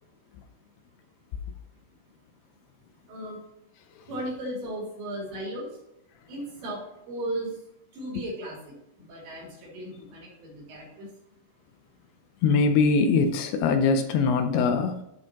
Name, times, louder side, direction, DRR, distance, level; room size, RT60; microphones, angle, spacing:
voice 1, 4.1-5.7 6.3-6.8 7.1-7.5 8.0-8.7 9.1-11.1, right 1 dB, 80° right, 5.3 m, -35 dB
voice 2, 12.4-15.0, left 4 dB, 80° left, 2.4 m, -22 dB
13.0 x 4.7 x 2.9 m
omnidirectional pair, 5.1 m